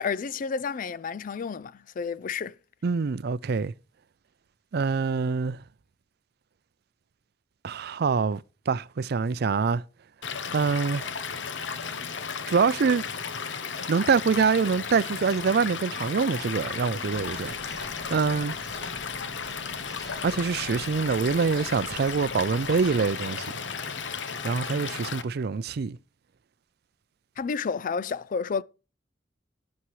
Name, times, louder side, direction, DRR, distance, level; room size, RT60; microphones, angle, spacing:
voice 1, 0.0-2.6 27.4-28.6, left 5 dB, 45° left, 0.4 m, -30 dB
voice 2, 2.8-3.7 4.7-5.6 7.6-9.8 10.5-11.1 12.5-13.0 13.9-18.5 20.2-23.5 24.4-26.0, right 5 dB, 60° right, 0.4 m, -25 dB
Stream / Liquid, 10.2-25.2, left 6 dB, 80° left, 0.9 m, -34 dB
sound 1, 17.1-23.1, right 1 dB, 5° right, 3.1 m, -49 dB
11.5 x 9.5 x 3.2 m
head